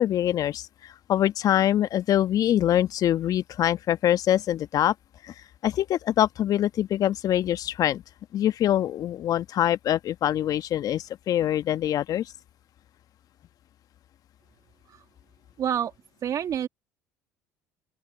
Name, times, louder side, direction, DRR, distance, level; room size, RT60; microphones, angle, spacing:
voice 1, 0.0-4.9 5.2-5.3 5.6-8.0 8.3-12.3, left 11 dB, 55° left, 1.4 m, -24 dB
voice 2, 15.6-15.9 16.2-16.7, right 9 dB, 50° right, 1.7 m, -27 dB
open air
hypercardioid pair, 60°, 8 cm